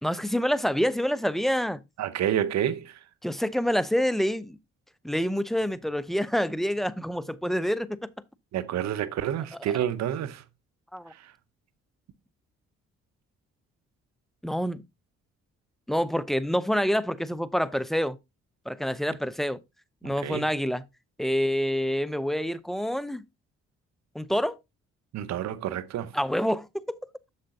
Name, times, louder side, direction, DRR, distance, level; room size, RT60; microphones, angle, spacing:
voice 1, 0.0-1.8 3.2-4.6 5.0-8.1 10.9-11.1 14.4-14.8 15.9-18.2 18.7-19.6 20.0-20.8 21.2-23.2 24.1-24.6 26.1-27.0, equal, ahead, 0.5 m, -27 dB
voice 2, 2.0-3.0 8.5-10.4 11.2-11.3 20.0-20.4 25.1-26.1, right 10 dB, 65° right, 0.7 m, -29 dB
6.8 x 6.5 x 2.7 m
supercardioid pair, 55°, 29 cm